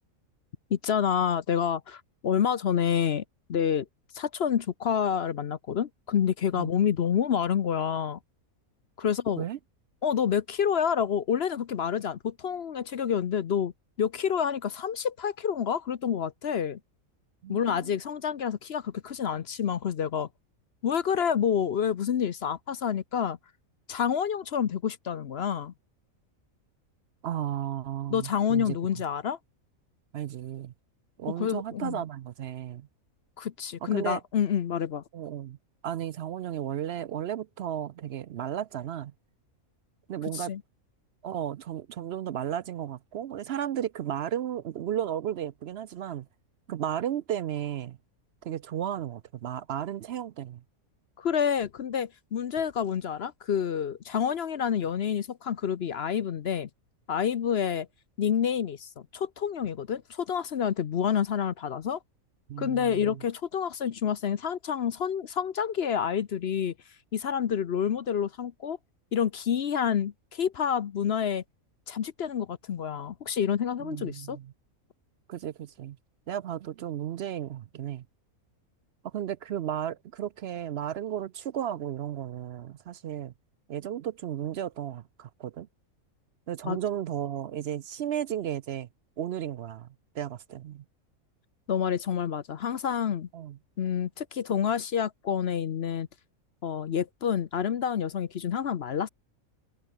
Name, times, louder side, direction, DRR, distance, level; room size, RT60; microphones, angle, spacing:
voice 1, 0.7-3.2 3.5-3.9 4.1-8.2 9.0-9.4 10.0-13.7 14.0-16.8 17.5-20.3 20.8-23.4 23.9-25.7 28.1-29.4 31.4-32.0 33.4-35.0 40.3-40.6 51.2-56.7 57.1-57.9 58.2-62.0 62.6-66.7 67.1-68.8 69.1-71.4 71.9-74.4 86.6-86.8 91.7-93.3 93.8-96.1 96.6-99.1, left 8 dB, 55° left, 0.9 m, -28 dB
voice 2, 17.4-17.9 27.2-28.8 30.1-30.7 31.2-32.9 33.9-34.2 35.1-35.6 35.8-39.1 40.1-40.5 41.2-46.3 46.7-48.0 48.4-50.6 62.5-63.2 73.8-74.5 75.3-76.0 76.3-78.0 79.0-83.3 83.7-85.7 86.5-88.9 89.2-89.9 90.1-90.8 93.3-93.6, right 10 dB, 65° right, 0.6 m, -34 dB
omnidirectional pair, 1.5 m